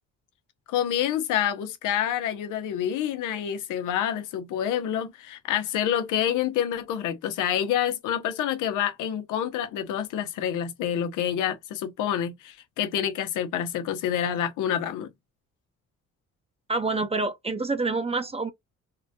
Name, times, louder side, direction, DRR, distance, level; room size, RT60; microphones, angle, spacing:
voice 1, 0.7-15.1, left 10 dB, 90° left, 0.8 m, -27 dB
voice 2, 16.7-18.5, right 3 dB, 20° right, 0.6 m, -27 dB
3.7 x 2.1 x 2.8 m
cardioid pair, 90°, 30 cm